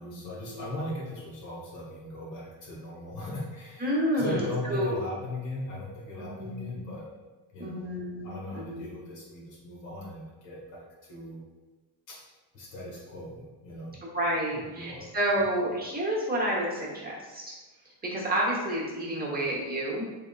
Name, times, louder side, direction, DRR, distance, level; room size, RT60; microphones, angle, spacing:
voice 1, 0.0-7.1 7.5-7.8 8.2-11.4 12.1-12.2 12.5-14.0 14.7-15.1, left 1 dB, 85° left, -4 dB, 1.4 m, -38 dB
voice 2, 3.8-4.9 6.2-6.9 7.6-8.9 14.1-17.5 18.0-20.1, right 1 dB, 20° right, -4 dB, 0.9 m, -30 dB
3.6 x 3.5 x 2.4 m, 1.2 s
cardioid pair, 110°, 44 cm